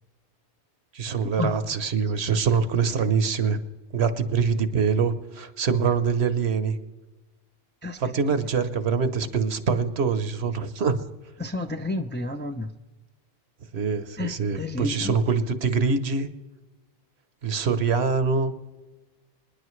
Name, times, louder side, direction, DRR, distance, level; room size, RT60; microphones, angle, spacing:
voice 1, 0.9-3.6 3.9-6.8 8.0-11.0 13.7-16.3 17.4-18.5, right 5 dB, 70° right, 11 dB, 1.2 m, -24 dB
voice 2, 7.8-8.4 11.4-12.7 14.2-15.2, left 2 dB, 15° left, 5 dB, 0.5 m, -31 dB
26.0 x 10.0 x 3.2 m, 1.2 s
omnidirectional pair, 1.1 m